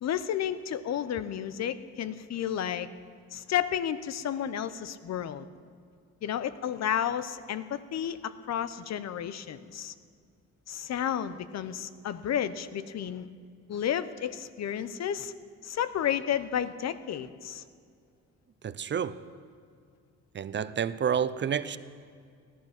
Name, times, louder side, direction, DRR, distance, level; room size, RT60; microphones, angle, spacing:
voice 1, 0.0-2.9 3.3-5.5 6.2-9.9 10.7-13.3 13.7-15.3 15.6-17.6, left 9 dB, 60° left, 15 dB, 0.7 m, -32 dB
voice 2, 18.6-19.2 20.3-21.8, right 8 dB, 40° right, 15 dB, 0.6 m, -29 dB
17.0 x 11.0 x 6.0 m, 2.2 s
cardioid pair, 90°, 30 cm